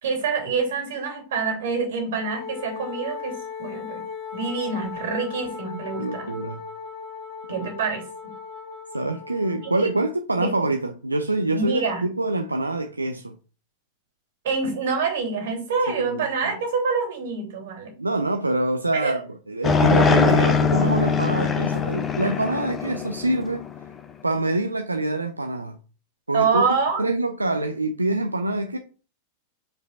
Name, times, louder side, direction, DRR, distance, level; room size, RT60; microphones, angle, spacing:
voice 1, 0.0-4.0 4.3-6.4 7.5-8.0 9.6-9.9 10.3-10.5 11.5-12.0 14.4-17.9 18.9-19.1 26.3-27.1, right 4 dB, 60° right, 3.1 m, -26 dB
Wind instrument woodwind instrument, 2.1-10.1, left 5 dB, 45° left, 1.8 m, -37 dB
voice 2, 6.0-6.6 7.6-7.7 8.9-13.4 15.9-16.5 18.0-19.2 19.5-23.6 24.2-25.8 26.3-26.6 27.0-28.8, right 2 dB, 80° right, 0.5 m, -25 dB
sound 1, 19.6-24.0, left 5 dB, 20° left, 0.9 m, -22 dB
5.1 x 4.6 x 5.5 m
figure-of-eight pair, 90°, 0 cm